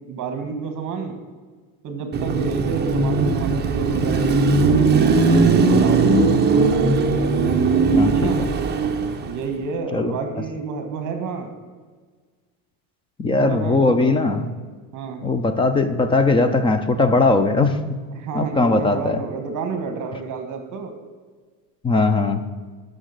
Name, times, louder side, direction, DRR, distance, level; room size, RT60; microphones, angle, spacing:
voice 1, 0.1-1.2 1.8-6.3 8.1-8.4 9.3-11.5 13.4-14.2 14.9-15.2 18.1-20.9, right 5 dB, 40° right, 6 dB, 1.6 m, -30 dB
Car passing by / Traffic noise roadway noise / Engine, 2.1-9.5, right 4 dB, 20° right, 0.9 m, -18 dB
voice 2, 7.9-8.5 9.9-10.1 13.2-14.5 15.2-17.8 18.3-19.2 21.8-22.4, left 3 dB, 15° left, 10 dB, 0.3 m, -19 dB
11.5 x 6.4 x 6.6 m, 1.5 s
cardioid pair, 140°, 47 cm